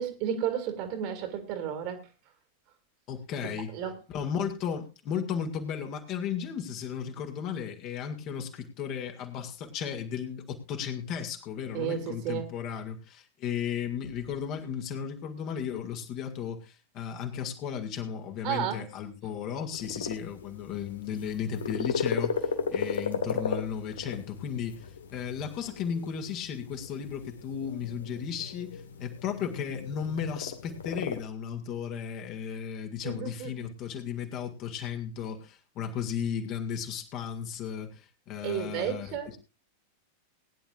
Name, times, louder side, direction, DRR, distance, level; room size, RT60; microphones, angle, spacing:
voice 1, 0.0-2.0 3.4-4.0 11.7-12.5 18.4-18.8 33.0-33.5 38.4-39.3, right 9 dB, 45° right, 2.4 m, -32 dB
voice 2, 3.1-3.8 4.1-24.8 25.1-39.4, left 8 dB, 40° left, 2.1 m, -35 dB
sound 1, 19.7-31.2, left 6 dB, 70° left, 1.3 m, -36 dB
20.5 x 10.5 x 2.5 m
figure-of-eight pair, 90°, 0 cm